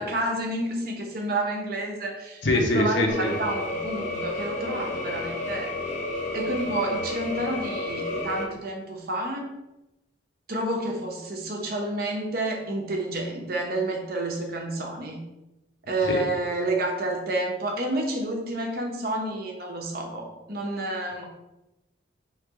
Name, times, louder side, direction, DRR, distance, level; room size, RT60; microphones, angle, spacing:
voice 1, 0.0-5.8 6.3-9.5 10.5-15.2 15.9-21.2, right 1 dB, 50° right, 1 dB, 0.8 m, -29 dB
voice 2, 2.4-3.3 16.1-16.2, left 1 dB, 70° left, 1 dB, 0.8 m, -23 dB
sound 1, 3.1-8.4, left 2 dB, 40° left, 0.6 m, -31 dB
3.2 x 2.8 x 4.6 m, 0.96 s
head